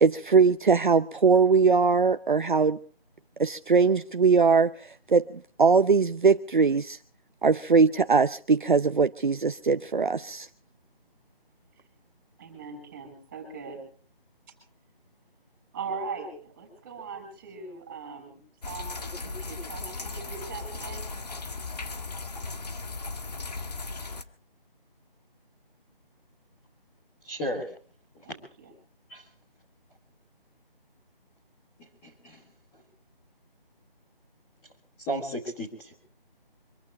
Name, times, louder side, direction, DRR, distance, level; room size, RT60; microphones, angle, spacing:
voice 1, 0.0-2.8 3.4-4.7 5.1-5.2 5.6-7.0 7.4-10.5, right 5 dB, 55° right, 10 dB, 0.8 m, -21 dB
voice 2, 12.4-13.8 15.7-18.4 18.6-21.0 28.2-28.7, right 4 dB, 15° right, 7 dB, 6.6 m, -40 dB
sound 1, 18.6-24.2, left 3 dB, 45° left, 1.6 m, -37 dB
voice 3, 27.2-27.7 29.1-29.2 32.0-32.4 35.0-35.9, right 1 dB, 5° left, -7 dB, 1.6 m, -33 dB
26.0 x 14.5 x 3.6 m, 0.42 s
figure-of-eight pair, 170°, 29 cm